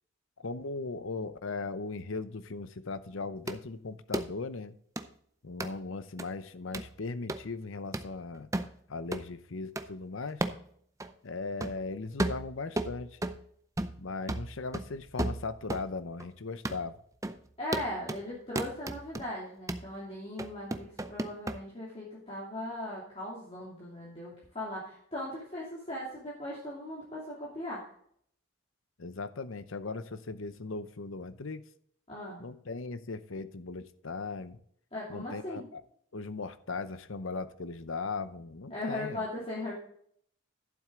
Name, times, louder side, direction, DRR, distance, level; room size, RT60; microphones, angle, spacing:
voice 1, 0.4-4.8 5.4-8.5 8.9-10.4 11.2-13.2 14.0-17.0 29.0-31.6 32.4-34.6 35.1-35.8 36.1-39.2, left 3 dB, 70° left, 0.7 m, -38 dB
sound 1, 3.5-3.6 4.1-4.3 5.0-5.1 5.6-5.7 6.2-6.3 6.7-6.9 7.3-7.4 7.9-8.1 8.5-8.7 9.1-9.3 9.8-9.9 10.4-10.6 11.0-11.1 11.6-11.8 12.2-13.4 13.8-14.0 14.3-15.9 16.2-16.3 16.6-16.8 17.2-17.4 17.7-18.2 18.6-19.2 19.7-19.9 20.4-21.6, right 1 dB, 15° right, 0.5 m, -34 dB
voice 2, 17.6-27.9 32.1-32.4 34.9-35.7 38.7-39.7, left 1 dB, 30° left, 2.7 m, -39 dB
12.0 x 7.6 x 3.7 m
head